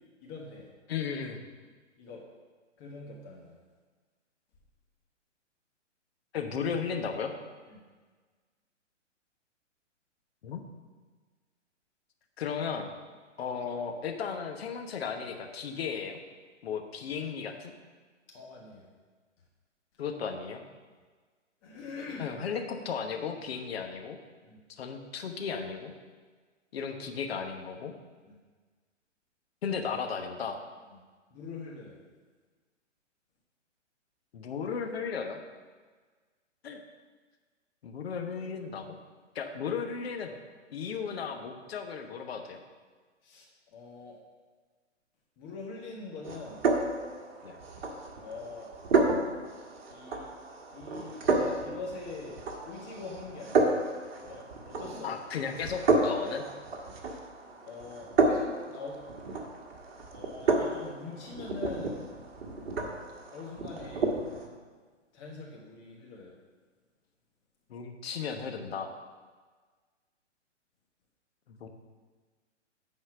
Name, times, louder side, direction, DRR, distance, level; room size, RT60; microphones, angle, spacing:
voice 1, 0.2-0.7 2.0-2.2 2.8-3.6 7.7-7.8 18.3-18.9 21.6-22.4 24.5-24.6 28.3-28.4 30.9-31.0 31.3-32.0 43.2-44.2 45.4-46.6 48.2-48.7 49.9-50.3 50.7-52.4 52.7-53.8 54.2-55.2 57.6-59.0 60.1-62.0 63.3-64.1 65.1-66.3, left 3 dB, 25° left, -2 dB, 1.3 m, -43 dB
voice 2, 0.9-1.4 6.3-7.3 10.4-10.6 12.4-12.9 13.4-16.2 16.6-17.7 20.0-20.6 22.2-24.2 24.8-25.9 26.7-27.9 29.6-30.6 34.3-35.4 36.6-36.8 37.8-39.0 39.3-40.3 40.7-42.6 47.4-47.6 55.0-56.5 67.7-68.9 71.5-71.7, left 6 dB, 55° left, 5 dB, 1.1 m, -35 dB
sound 1, 46.2-64.5, right 3 dB, 55° right, 1.5 m, -31 dB
10.5 x 4.4 x 5.9 m, 1.5 s
figure-of-eight pair, 130°, 37 cm